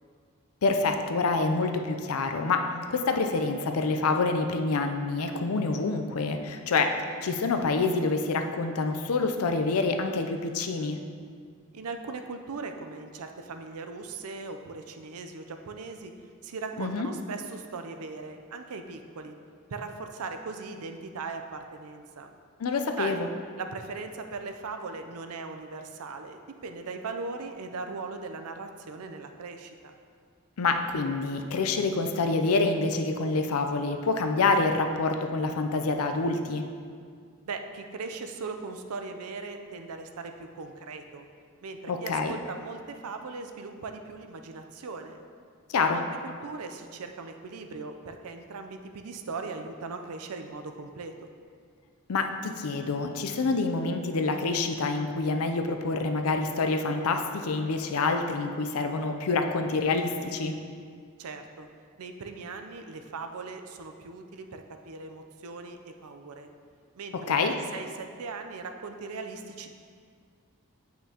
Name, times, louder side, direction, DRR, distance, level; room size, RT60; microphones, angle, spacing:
voice 1, 0.6-7.0 7.2-11.0 16.8-17.1 22.6-23.3 30.6-36.6 41.9-42.3 45.7-46.0 52.1-60.5 67.3-67.5, left 3 dB, 75° left, 6 dB, 0.5 m, -27 dB
voice 2, 11.7-16.1 16.4-19.3 19.7-22.3 23.0-23.2 23.6-29.9 37.5-41.3 41.6-45.2 45.8-51.1 61.2-61.7 62.0-66.5 66.9-69.7, right 4 dB, 80° right, 6 dB, 0.5 m, -39 dB
8.3 x 5.7 x 2.9 m, 2.1 s
head